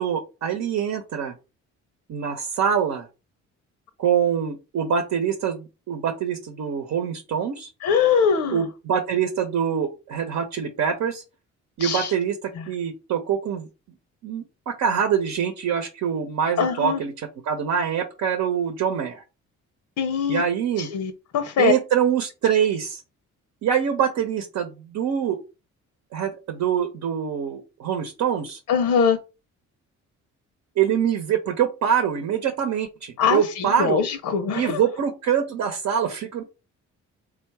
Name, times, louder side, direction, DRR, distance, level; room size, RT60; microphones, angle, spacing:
voice 1, 0.0-1.4 2.1-3.1 4.0-7.7 8.5-11.2 11.8-12.4 12.7-13.7 14.2-19.2 20.3-20.9 21.6-23.0 23.6-25.4 26.1-28.6 30.8-34.0 34.5-36.4, right 8 dB, 70° right, 0.9 m, -24 dB
voice 2, 7.8-8.6 11.8-12.1 16.6-17.0 20.0-20.4 20.8-21.7 28.7-29.2 33.2-34.8, left 6 dB, 70° left, 0.7 m, -22 dB
3.6 x 2.4 x 4.6 m
cardioid pair, 90°, 30 cm